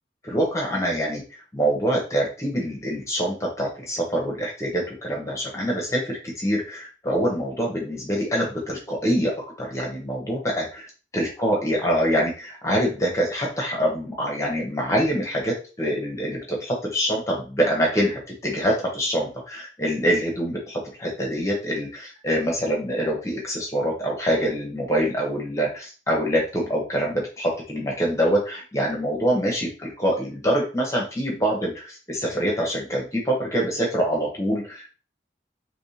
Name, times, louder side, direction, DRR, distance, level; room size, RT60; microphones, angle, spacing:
voice 1, 0.2-1.2 1.5-10.8 11.1-35.0, equal, 15° left, -2 dB, 0.8 m, -25 dB
3.5 x 3.1 x 2.8 m, 0.36 s
head